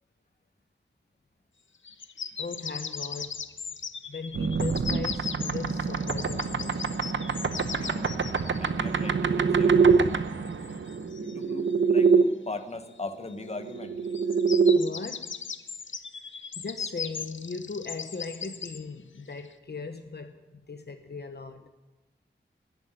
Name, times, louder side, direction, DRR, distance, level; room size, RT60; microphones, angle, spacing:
sound 1, 1.8-8.7 10.1-11.7 13.3-13.4 13.7-13.8 14.1-18.8 19.4-19.5, left 6 dB, 75° left, 0.7 m, -38 dB
voice 1, 2.4-3.4 4.1-6.8 14.7-15.4 16.6-21.7, left 4 dB, 55° left, 1.0 m, -38 dB
sound 2, 4.3-12.2 13.5-14.8, right 5 dB, 75° right, 0.8 m, -25 dB
voice 2, 7.7-8.1 8.6-9.8 11.2-12.1 12.5-14.0, left 3 dB, 35° left, 1.2 m, -39 dB
12.5 x 11.0 x 9.1 m
wide cardioid pair, 85°, 20 cm